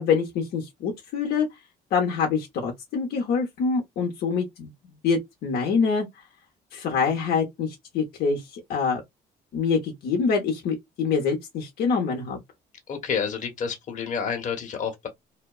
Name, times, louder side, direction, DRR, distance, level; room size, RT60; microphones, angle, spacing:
voice 1, 0.0-1.5 1.9-4.7 5.0-6.1 6.7-9.0 9.5-12.4, left 5 dB, 70° left, 0.7 m, -25 dB
voice 2, 12.9-15.1, left 6 dB, 45° left, 1.0 m, -29 dB
2.7 x 2.1 x 2.3 m
cardioid pair, 110°, 17 cm